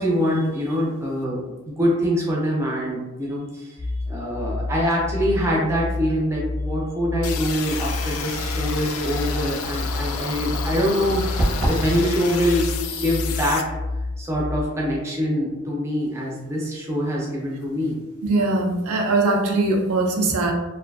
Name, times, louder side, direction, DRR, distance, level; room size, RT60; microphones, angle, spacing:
voice 1, 0.0-3.8 4.1-12.7 13.0-13.6 14.2-18.0, equal, 10° right, -3 dB, 0.4 m, -24 dB
sound 1, 3.8-14.6, left 2 dB, 35° left, 0.6 m, -30 dB
sound 2, 7.2-13.6, left 6 dB, 85° left, 0.3 m, -31 dB
sound 3, 11.4-11.9, right 1 dB, 65° right, 0.8 m, -21 dB
voice 2, 18.2-20.5, right 2 dB, 90° right, 1 dB, 0.5 m, -21 dB
2.6 x 2.3 x 2.3 m, 1.1 s
head